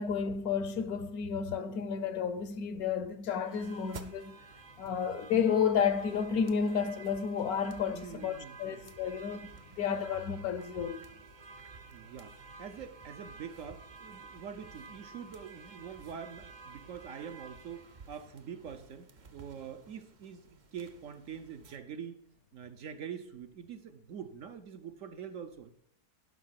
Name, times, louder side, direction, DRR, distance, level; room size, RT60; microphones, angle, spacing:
voice 1, 0.0-4.3 4.8-9.5 9.8-11.0, left 7 dB, 70° left, 1.2 m, -31 dB
sound 1, 3.4-21.8, right 4 dB, 45° right, 0.6 m, -52 dB
voice 2, 7.9-8.8 11.9-20.4 20.7-22.2 22.5-25.7, right 7 dB, 60° right, 1.0 m, -45 dB
11.0 x 5.7 x 5.8 m
omnidirectional pair, 1.7 m